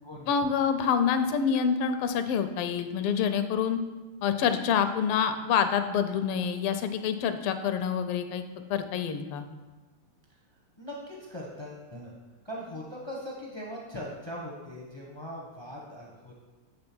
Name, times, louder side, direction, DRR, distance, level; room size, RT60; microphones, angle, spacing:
voice 1, 0.3-3.8 4.2-8.4 8.7-9.4, left 7 dB, 90° left, 9 dB, 1.6 m, -27 dB
voice 2, 10.8-12.1 12.4-16.4, equal, 40° left, -3 dB, 0.4 m, -40 dB
8.7 x 3.6 x 6.1 m, 1.2 s
omnidirectional pair, 2.4 m